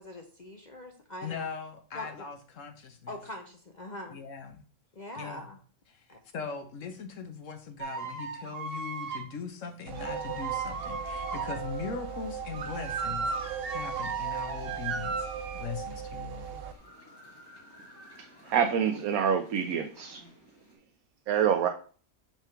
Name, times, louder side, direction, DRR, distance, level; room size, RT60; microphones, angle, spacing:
voice 1, 0.0-1.5 1.9-2.3 3.1-4.2 5.0-5.6 6.1-6.2, left 1 dB, 40° left, 0.7 m, -42 dB
voice 2, 1.2-3.2 4.1-4.6 5.1-5.5 5.9-6.1 6.3-15.3 15.5-16.6, left 6 dB, 65° left, 1.2 m, -40 dB
sound 1, 7.8-9.3 10.0-11.6 12.5-15.6, right 5 dB, 50° right, 0.9 m, -35 dB
sound 2, 9.8-20.7, left 2 dB, 15° left, 1.5 m, -52 dB
sound 3, 9.9-16.7, right 8 dB, 65° right, 0.6 m, -39 dB
voice 3, 18.2-20.2 21.3-21.7, right 8 dB, 85° right, 1.1 m, -27 dB
5.9 x 3.5 x 5.6 m
omnidirectional pair, 1.5 m